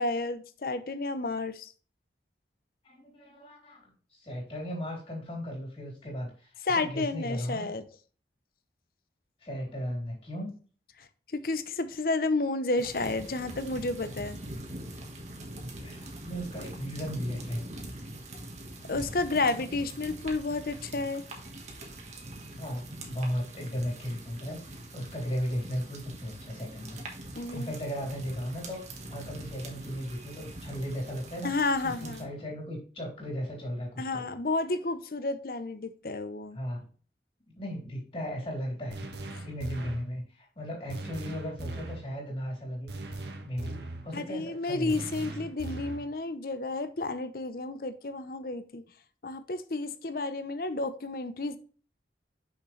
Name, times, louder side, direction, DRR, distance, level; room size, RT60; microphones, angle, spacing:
voice 1, 0.0-1.7 6.7-7.9 11.3-14.4 18.9-21.2 27.3-27.7 31.4-32.3 34.0-36.6 44.1-48.8 49.2-51.6, left 3 dB, 55° left, 12 dB, 0.7 m, -31 dB
voice 2, 2.8-7.7 9.4-10.5 15.8-17.6 22.5-27.0 27.5-31.5 31.8-34.2 36.5-36.8 37.6-39.0 39.4-42.9 43.4-45.0, equal, 35° left, -1 dB, 3.5 m, -36 dB
sound 1, 12.8-32.2, right 1 dB, 40° right, 1.4 m, -43 dB
sound 2, 38.9-40.1 40.9-42.1 42.9-44.1 44.9-46.1, right 2 dB, 75° right, 1.2 m, -39 dB
6.2 x 6.0 x 3.2 m, 0.39 s
head